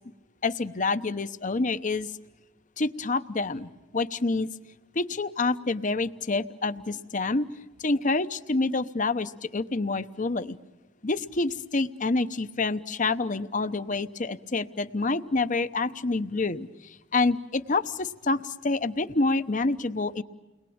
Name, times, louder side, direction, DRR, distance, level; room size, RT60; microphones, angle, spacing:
voice 1, 0.4-2.1 2.8-4.5 4.9-7.5 7.8-10.6 11.0-20.2, left 3 dB, 40° left, 12 dB, 0.9 m, -27 dB
30.0 x 21.5 x 8.7 m, 1.1 s
head